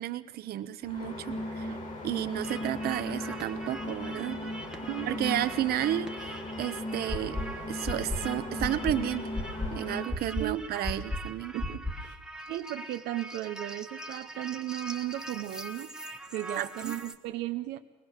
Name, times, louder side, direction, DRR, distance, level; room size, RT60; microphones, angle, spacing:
voice 1, 0.0-1.8 2.0-4.4 5.1-7.4 7.7-9.3 9.7-11.5 16.6-16.9, right 12 dB, 65° right, 11 dB, 1.0 m, -32 dB
sound 1, 0.8-10.1, left 1 dB, 45° left, 6.3 m, -37 dB
voice 2, 1.3-1.8 4.1-5.1 10.4-11.0 11.5-12.2 12.5-15.9 16.3-17.8, right 15 dB, 90° right, 6 dB, 0.8 m, -36 dB
sound 2, 2.4-17.2, right 2 dB, 5° right, 1.3 m, -43 dB
sound 3, 7.1-7.4 7.8-8.2 8.6-8.9 9.3-9.7 10.1-10.4 10.8-11.2 11.6-11.9, left 2 dB, 15° left, 2.1 m, -31 dB
22.5 x 19.5 x 6.6 m, 1.1 s
cardioid pair, 110°, 17 cm